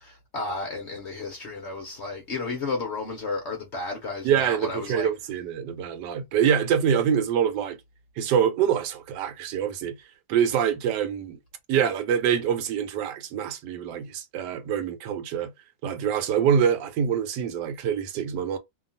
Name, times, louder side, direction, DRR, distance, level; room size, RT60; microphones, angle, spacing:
voice 1, 0.0-5.1, left 3 dB, 60° left, 0.7 m, -32 dB
voice 2, 4.2-7.8 8.2-9.9 10.3-11.4 11.7-15.5 15.8-18.6, right 8 dB, 75° right, 1.2 m, -25 dB
2.9 x 2.3 x 2.5 m
omnidirectional pair, 2.0 m